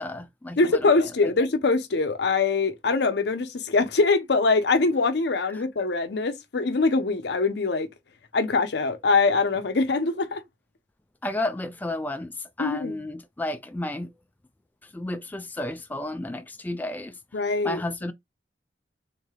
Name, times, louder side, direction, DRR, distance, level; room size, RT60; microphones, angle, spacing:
voice 1, 0.0-0.8 1.2-1.3 5.5-5.6 11.2-14.1 14.9-17.1 17.6-18.1, left 1 dB, 10° left, 0.3 m, -32 dB
voice 2, 0.6-7.9 8.3-10.4 12.6-13.0 17.3-17.8, left 3 dB, 70° left, 0.6 m, -23 dB
3.7 x 3.2 x 2.2 m
head